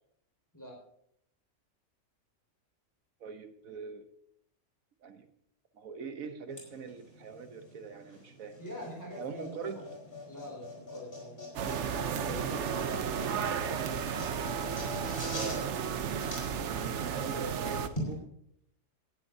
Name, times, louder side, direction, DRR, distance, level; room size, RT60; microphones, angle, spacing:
voice 1, 3.2-4.1 5.0-5.3 5.7-8.6 9.2-9.8 12.1-12.7 13.2-13.3 15.3-15.8 16.6-18.2, right 5 dB, 85° right, 7 dB, 1.4 m, -42 dB
sound 1, 6.5-18.1, left 1 dB, 40° left, 4.3 m, -45 dB
voice 2, 8.6-9.9 10.3-11.5 11.9-13.9, equal, 15° left, -2 dB, 5.0 m, -45 dB
sound 2, 11.6-17.9, right 7 dB, 60° right, 1.0 m, -33 dB
18.5 x 11.0 x 2.7 m, 0.71 s
omnidirectional pair, 1.4 m